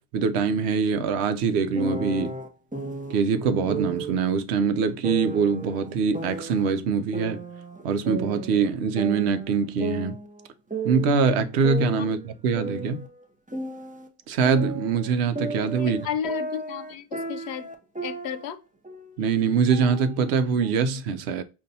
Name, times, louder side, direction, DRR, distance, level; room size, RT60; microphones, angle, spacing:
voice 1, 0.1-2.4 3.1-7.4 7.8-10.2 10.8-13.1 14.3-16.1 19.2-21.4, right 5 dB, 85° right, 0.9 m, -23 dB
sound 1, 1.7-3.2 3.7-4.2 5.0-6.7 7.1-8.7 9.0-11.2 11.6-14.1 14.4-18.5 18.8-19.2 19.7-20.7, right 2 dB, 10° right, 0.4 m, -34 dB
voice 2, 15.8-17.7 18.0-18.6, left 8 dB, 80° left, 0.8 m, -33 dB
5.2 x 2.6 x 2.7 m
omnidirectional pair, 1.1 m